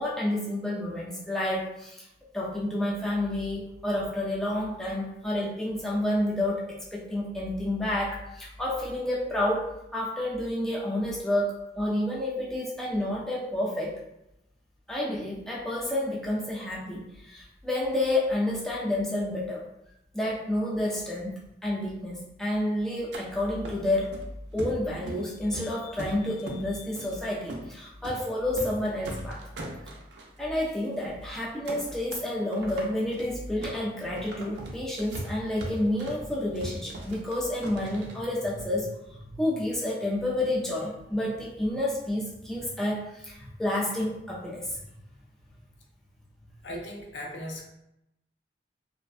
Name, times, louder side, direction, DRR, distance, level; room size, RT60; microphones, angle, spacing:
voice 1, 0.0-2.0 2.3-6.6 6.9-13.9 14.9-19.6 20.1-24.2 24.5-29.4 30.4-44.8, left 1 dB, 5° left, -6 dB, 0.4 m, -29 dB
sound 1, 23.1-23.2 23.6-24.2 24.6-25.3 25.5-26.6 26.9-27.1 27.5-27.7 28.0-28.2 28.5-28.8 29.0-30.3 30.7-30.8 31.0-31.3 31.7-32.3 32.5-38.2, right 1 dB, 70° right, 0.4 m, -39 dB
voice 2, 46.6-47.6, left 1 dB, 85° left, 0 dB, 0.5 m, -37 dB
2.5 x 2.1 x 2.4 m, 0.85 s
head